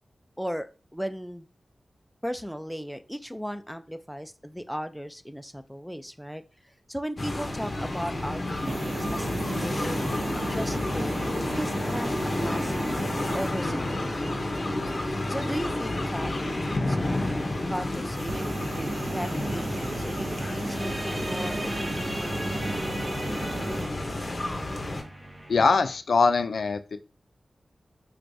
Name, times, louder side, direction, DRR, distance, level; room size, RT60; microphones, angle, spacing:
voice 1, 0.4-1.5 2.2-10.0 10.5-11.2 11.5-12.9 13.3-13.8 14.2-14.7 15.3-17.2 17.7-22.9, equal, ahead, 8 dB, 0.3 m, -36 dB
sound 1, 7.2-25.0, left 1 dB, 40° left, 0.7 m, -30 dB
sound 2, 8.5-13.5 18.1-23.9, right 2 dB, 80° right, 0.5 m, -35 dB
sound 3, 19.7-26.0, right 1 dB, 45° right, 0.7 m, -40 dB
voice 2, 25.5-27.0, left 4 dB, 85° left, 10 dB, 0.3 m, -22 dB
4.5 x 2.2 x 2.6 m, 0.33 s
wide cardioid pair, 80°, 0 cm